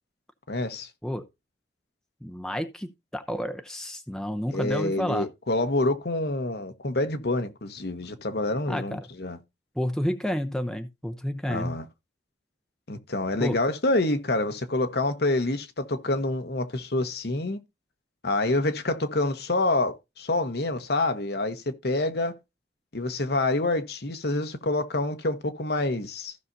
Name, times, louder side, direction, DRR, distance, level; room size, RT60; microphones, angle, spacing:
voice 1, 0.5-0.9 4.5-9.4 11.5-11.9 12.9-17.6 18.2-22.4 22.9-26.4, left 2 dB, 60° left, 1.0 m, -27 dB
voice 2, 2.2-5.3 8.7-9.1 9.8-11.8 13.4-13.6, equal, 5° left, 0.6 m, -30 dB
15.0 x 5.6 x 2.7 m
head